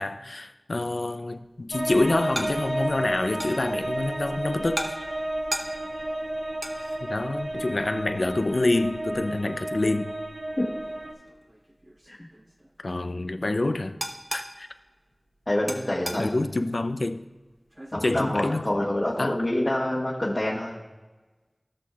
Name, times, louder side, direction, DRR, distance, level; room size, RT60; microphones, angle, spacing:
voice 1, 0.0-4.9 7.0-10.1 12.8-14.0 14.3-14.7 16.2-17.2 18.0-18.7 19.2-19.4, left 2 dB, 75° left, 0.5 m, -27 dB
sound 1, 0.8-19.4, right 1 dB, 35° right, 1.2 m, -41 dB
sound 2, 1.7-11.1, right 1 dB, 60° right, 1.1 m, -32 dB
voice 2, 15.5-16.4 17.9-20.8, left 1 dB, 50° left, 1.3 m, -27 dB
17.5 x 6.1 x 2.4 m
wide cardioid pair, 50°, 0 cm